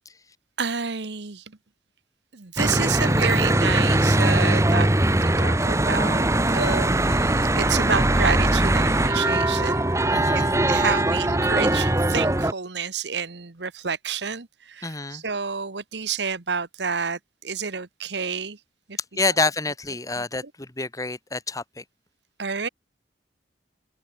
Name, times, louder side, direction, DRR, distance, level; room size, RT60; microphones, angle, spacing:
voice 1, 0.6-1.6 2.3-9.8 10.3-18.6 18.9-19.0 20.1-20.2 22.4-22.7, right 6 dB, 70° right, 1.3 m, -29 dB
Church bell / Traffic noise roadway noise, 2.6-12.5, right 1 dB, 15° right, 1.2 m, -21 dB
voice 2, 6.4-6.8 10.1-10.5 14.8-15.2 19.2-21.8, left 3 dB, 20° left, 1.4 m, -28 dB
open air
head